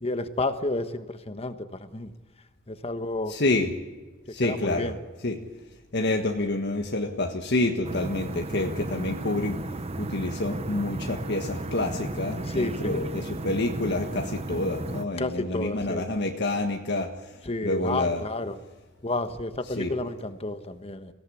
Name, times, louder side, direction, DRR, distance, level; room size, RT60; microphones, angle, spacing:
voice 1, 0.0-2.1 2.7-3.3 4.4-5.0 12.4-13.0 15.2-16.1 17.4-18.6 19.0-21.1, left 2 dB, 30° left, 9 dB, 1.3 m, -31 dB
voice 2, 3.3-3.7 4.3-4.9 5.2-5.4 5.9-9.6 10.0-17.1 17.6-18.2 19.8-19.9, left 2 dB, 55° left, 3 dB, 1.5 m, -28 dB
sound 1, 7.8-15.0, right 2 dB, 30° right, 0.8 m, -34 dB
24.0 x 17.5 x 8.5 m, 1.3 s
head